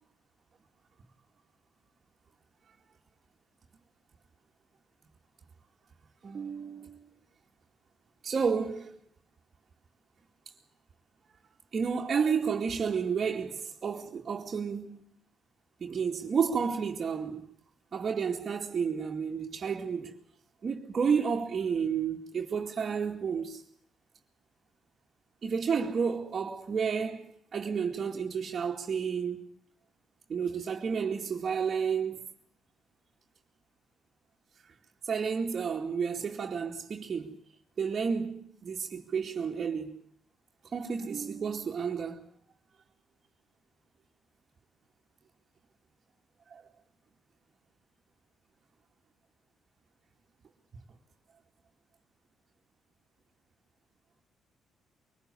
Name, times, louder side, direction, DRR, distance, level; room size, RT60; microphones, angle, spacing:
voice 1, 6.2-7.1 8.2-8.9 11.7-15.0 15.8-17.5 17.9-20.2 20.6-23.6 25.4-29.4 30.3-32.2 35.0-37.4 37.8-40.0 40.7-42.2 46.5-46.6, right 6 dB, 45° right, 2.4 m, -31 dB
23.5 x 19.5 x 8.4 m
cardioid pair, 90°, 0 cm